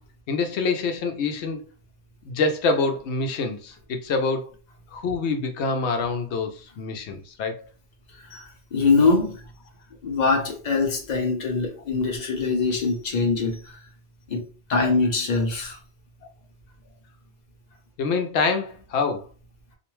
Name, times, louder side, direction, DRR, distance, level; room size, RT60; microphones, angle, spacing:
voice 1, 0.3-1.6 2.2-4.5 4.9-7.7 18.0-19.2, left 4 dB, 80° left, 0.9 m, -26 dB
voice 2, 8.2-9.4 10.0-13.8 14.3-14.4 14.7-15.8, left 4 dB, 45° left, 0.8 m, -23 dB
2.6 x 2.1 x 3.0 m
omnidirectional pair, 1.1 m